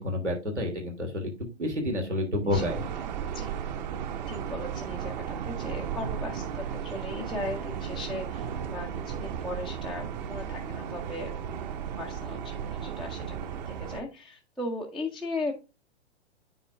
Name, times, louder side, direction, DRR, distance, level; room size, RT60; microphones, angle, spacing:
voice 1, 0.0-2.8, left 1 dB, 90° right, 1 dB, 2.9 m, -29 dB
sound 1, 2.5-14.0, right 8 dB, 40° right, 0.9 m, -35 dB
voice 2, 4.1-11.3 12.0-15.5, left 2 dB, ahead, -4 dB, 0.4 m, -37 dB
9.2 x 4.3 x 3.4 m, 0.27 s
figure-of-eight pair, 115°, 34 cm